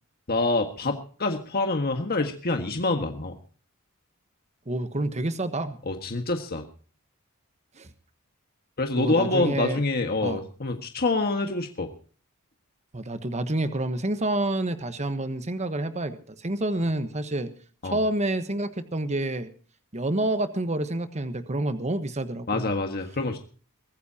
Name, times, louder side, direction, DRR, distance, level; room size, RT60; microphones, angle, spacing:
voice 1, 0.3-3.3 5.8-6.6 8.8-11.9 17.8-18.0 22.5-23.4, left 2 dB, 45° left, 5 dB, 1.7 m, -26 dB
voice 2, 4.7-5.8 7.8-7.9 9.0-9.8 10.2-10.4 12.9-17.5 17.8-19.5 19.9-22.7, right 1 dB, 30° right, 10 dB, 1.2 m, -28 dB
23.5 x 15.0 x 2.8 m, 0.40 s
head